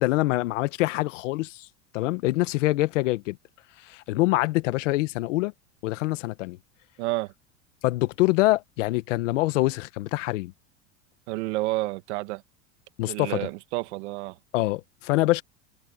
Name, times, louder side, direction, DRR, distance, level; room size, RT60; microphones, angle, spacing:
voice 1, 0.0-1.7 1.9-3.4 3.9-5.5 5.8-6.6 7.8-10.5 13.0-13.5 14.5-15.4, left 19 dB, 85° left, 1.2 m, -25 dB
voice 2, 7.0-7.3 11.3-12.4 13.1-14.4, right 20 dB, 70° right, 2.0 m, -30 dB
open air
supercardioid pair, 165°, 36 cm